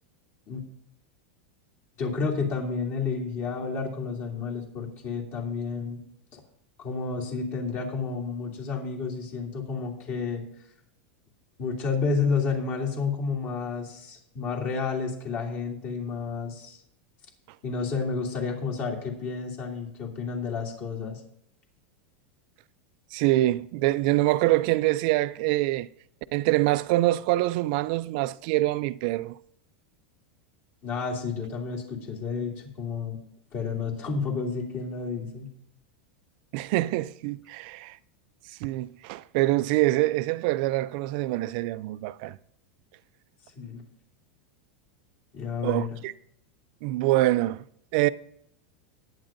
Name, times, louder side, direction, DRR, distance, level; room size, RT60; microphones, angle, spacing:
voice 1, 2.0-6.0 6.3-6.4 6.8-10.4 11.6-16.8 17.6-21.2 30.8-33.2 33.5-35.5 43.6-43.8 45.3-45.9, left 5 dB, 40° left, 2.8 m, -30 dB
voice 2, 23.1-25.9 26.3-29.4 36.5-38.0 38.5-42.4 45.6-46.1 46.8-47.6 47.9-48.1, right 17 dB, 50° right, 0.4 m, -25 dB
19.5 x 8.8 x 2.6 m
supercardioid pair, 150°, 6 cm